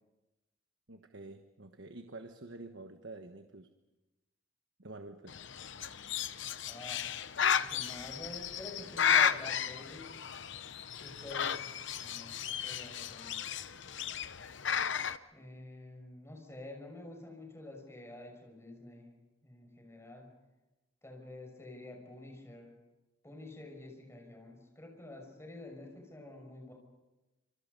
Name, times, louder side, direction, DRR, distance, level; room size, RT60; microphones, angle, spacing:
voice 1, 0.9-3.7 4.8-5.3, right 2 dB, 60° right, 6 dB, 1.3 m, -48 dB
Bird, 5.3-15.2, left 8 dB, 60° left, 0.8 m, -34 dB
voice 2, 6.7-7.2 7.5-10.2 11.0-11.7 12.0-12.3 12.6-13.4 15.3-19.1 19.4-20.3 21.0-22.7 23.2-26.7, left 2 dB, 15° left, 1 dB, 6.0 m, -48 dB
28.0 x 27.5 x 5.4 m, 1.1 s
head